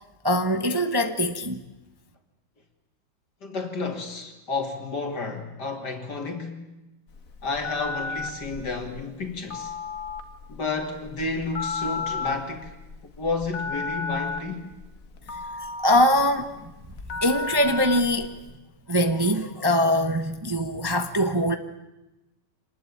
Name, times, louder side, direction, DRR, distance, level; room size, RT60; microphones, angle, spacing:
voice 1, 0.2-1.6 15.6-16.5 17.2-18.3 18.9-21.6, equal, 15° right, 1.0 m, -22 dB
voice 2, 3.4-6.7 7.4-9.7 10.5-12.7 13.0-14.7, left 3 dB, 65° left, 3.5 m, -31 dB
Telephone, 7.1-18.5, left 4 dB, 45° left, 2.0 m, -34 dB
26.0 x 20.0 x 8.9 m
omnidirectional pair, 2.0 m